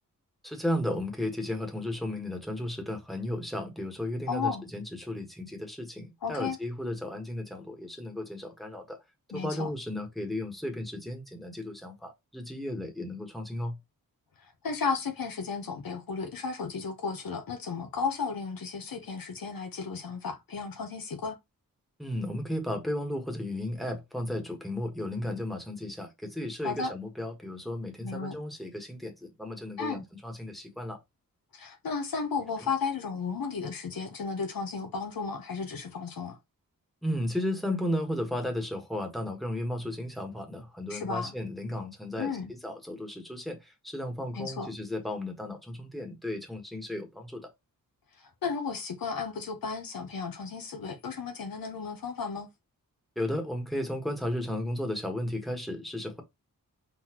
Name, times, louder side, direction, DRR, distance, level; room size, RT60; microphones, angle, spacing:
voice 1, 0.4-9.0 9.3-13.8 22.0-31.0 32.6-32.7 37.0-47.5 53.1-56.2, left 1 dB, ahead, 1.4 m, -34 dB
voice 2, 4.3-4.6 6.2-6.6 9.3-9.7 14.6-21.4 26.6-26.9 28.0-28.4 29.8-30.0 31.5-36.4 40.9-41.3 42.2-42.5 44.3-44.7 48.4-52.5, left 5 dB, 75° left, 1.0 m, -34 dB
4.1 x 3.9 x 3.0 m
wide cardioid pair, 75°, 35 cm